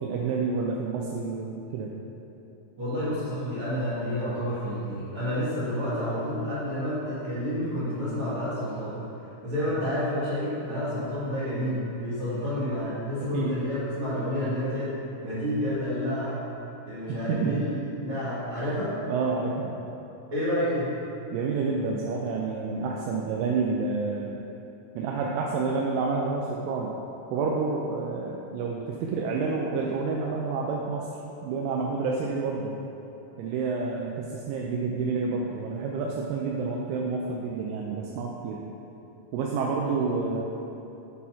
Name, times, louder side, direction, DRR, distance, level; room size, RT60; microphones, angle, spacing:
voice 1, 0.0-2.0 13.3-13.6 17.1-17.7 19.1-19.8 21.3-24.4 25.0-26.9 27.3-31.1 31.4-32.7 33.4-38.6 39.3-40.4, right 4 dB, 80° right, -2 dB, 2.2 m, -29 dB
voice 2, 2.8-9.0 9.4-16.4 16.9-17.7 18.0-19.0 20.3-21.0 39.9-40.0, equal, 45° right, -13 dB, 2.1 m, -29 dB
6.4 x 4.2 x 5.6 m, 2.9 s
omnidirectional pair, 4.0 m